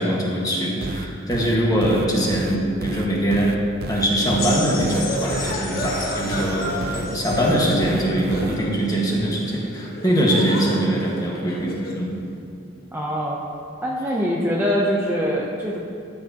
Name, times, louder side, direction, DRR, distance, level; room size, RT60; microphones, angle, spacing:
voice 1, 0.0-3.6 3.9-12.1, right 1 dB, 20° left, -3 dB, 1.6 m, -22 dB
sound 1, 0.8-8.6, right 3 dB, 50° right, 0.5 m, -32 dB
sound 2, 4.4-7.6 8.5-8.6, left 3 dB, 85° left, 2.1 m, -33 dB
sound 3, 4.6-12.1, left 1 dB, 50° left, 1.3 m, -32 dB
voice 2, 12.9-13.4 13.8-15.8, equal, 10° right, -4 dB, 0.7 m, -23 dB
13.5 x 9.5 x 3.0 m, 2.5 s
head